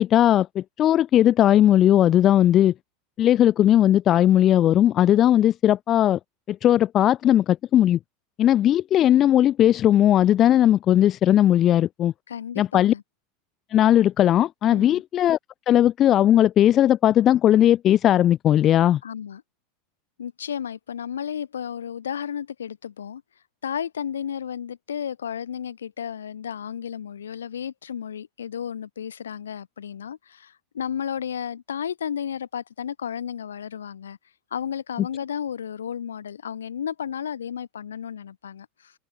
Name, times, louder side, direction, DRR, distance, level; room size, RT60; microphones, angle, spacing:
voice 1, 0.0-2.7 3.2-6.2 6.5-8.0 8.4-12.1 12.6-12.9 13.7-15.4 15.7-19.0, left 11 dB, 35° left, 0.5 m, -18 dB
voice 2, 12.3-13.0 14.7-15.0 19.0-19.4 20.2-23.2 23.6-34.2 34.5-38.9, left 8 dB, 70° left, 2.4 m, -33 dB
figure-of-eight pair, 80°, 0 cm